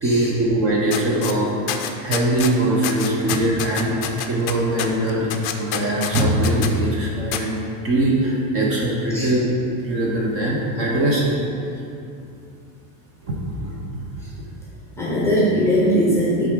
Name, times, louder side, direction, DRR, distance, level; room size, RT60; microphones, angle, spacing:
voice 1, 0.0-5.3 5.6-7.6 7.8-9.4 9.8-11.5 13.3-13.8, right 1 dB, 30° right, -3 dB, 0.9 m, -21 dB
sound 1, 0.9-1.3 1.7-2.5 2.8-6.7 7.3-7.4, left 10 dB, 50° left, 0.5 m, -27 dB
voice 2, 15.0-16.5, equal, 5° left, -6 dB, 0.8 m, -20 dB
8.8 x 3.7 x 4.7 m, 2.6 s
supercardioid pair, 165°, 48 cm